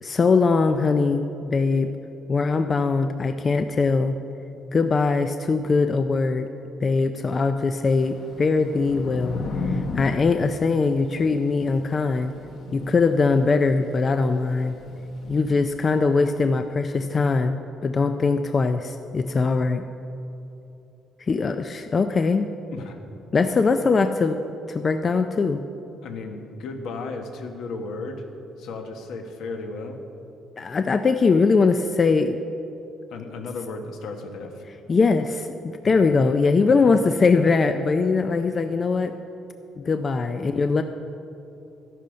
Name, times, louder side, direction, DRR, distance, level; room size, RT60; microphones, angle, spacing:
voice 1, 0.0-1.9 2.3-4.2 4.7-6.5 6.8-12.3 12.7-14.7 15.3-19.8 21.3-22.5 23.3-24.4 24.7-25.6 30.6-32.4 34.9-39.1 39.8-40.8, left 4 dB, 30° left, 8 dB, 0.4 m, -21 dB
Thunder / Rain, 7.9-16.3, left 3 dB, 50° left, 1.1 m, -36 dB
voice 2, 26.0-28.2 28.6-30.0 33.1-34.6 35.8-36.1, left 3 dB, 70° left, 5 dB, 1.3 m, -34 dB
13.0 x 11.0 x 5.2 m, 2.8 s
cardioid pair, 150°, 0 cm